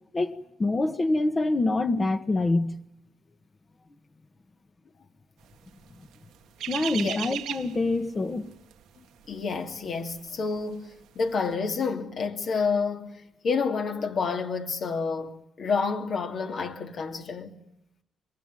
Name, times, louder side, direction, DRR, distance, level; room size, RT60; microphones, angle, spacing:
voice 1, 0.1-2.8 6.7-8.5, left 2 dB, 30° left, 1.5 m, -26 dB
sound 1, 5.7-10.7 11.0-11.3, right 11 dB, 85° right, 1.6 m, -36 dB
voice 2, 9.3-10.9 11.1-13.2 13.4-17.5, left 5 dB, 55° left, 2.9 m, -29 dB
25.5 x 21.5 x 9.8 m
cardioid pair, 90°, 0 cm